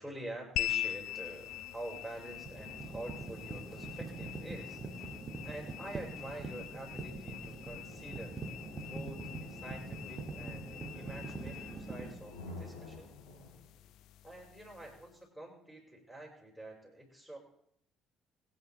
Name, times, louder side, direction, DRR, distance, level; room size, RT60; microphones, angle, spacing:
voice 1, 0.0-4.8 5.4-8.4 8.8-13.1 14.2-17.4, right 1 dB, 5° right, -2 dB, 6.1 m, -47 dB
sound 1, 0.6-15.2, left 13 dB, 60° left, 0.4 m, -44 dB
sound 2, 1.5-1.7 2.1-12.1, right 3 dB, 30° right, 2.2 m, -44 dB
sound 3, 4.7-13.9, left 2 dB, 75° left, 4.0 m, -52 dB
23.0 x 10.5 x 3.6 m, 0.69 s
figure-of-eight pair, 50°, 0 cm